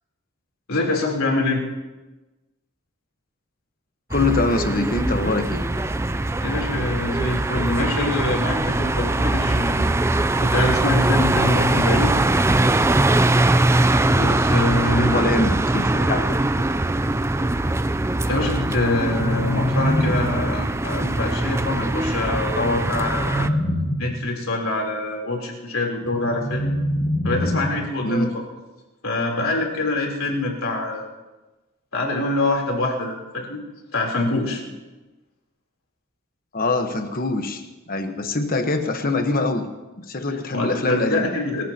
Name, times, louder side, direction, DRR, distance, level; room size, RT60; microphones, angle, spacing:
voice 1, 0.7-1.6 6.4-9.9 10.4-12.2 14.1-15.1 18.3-23.5 24.0-26.7 27.2-28.4 29.0-31.1 31.9-33.6 33.9-34.6 40.5-41.6, left 2 dB, 90° left, 0 dB, 3.6 m, -25 dB
voice 2, 4.1-5.7 14.8-16.7 28.0-28.3 36.5-41.3, left 2 dB, 45° left, 6 dB, 1.3 m, -24 dB
sound 1, 4.1-23.5, right 2 dB, 15° right, 0.4 m, -21 dB
sound 2, 18.7-20.7 22.3-24.2 26.0-28.0, equal, 25° left, 5.7 m, -25 dB
28.0 x 14.0 x 2.9 m, 1.1 s
head